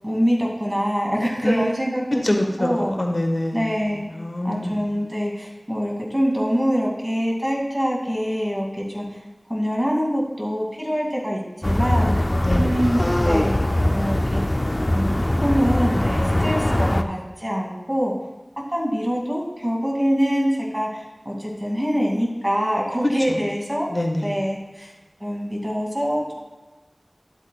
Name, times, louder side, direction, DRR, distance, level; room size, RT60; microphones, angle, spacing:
voice 1, 0.0-2.0 2.3-2.9 3.5-4.0 4.4-9.1 9.5-12.1 12.6-14.4 14.9-18.1 18.7-23.9 24.2-24.9 25.2-26.3, equal, 15° right, -3 dB, 2.5 m, -24 dB
voice 2, 2.2-4.9 12.4-12.7 23.3-23.4 23.9-24.4, left 1 dB, 60° left, 1 dB, 1.4 m, -25 dB
sound 1, 11.6-17.0, left 1 dB, 40° left, 0.5 m, -21 dB
12.0 x 8.2 x 2.4 m, 1.2 s
wide cardioid pair, 40°, 0 cm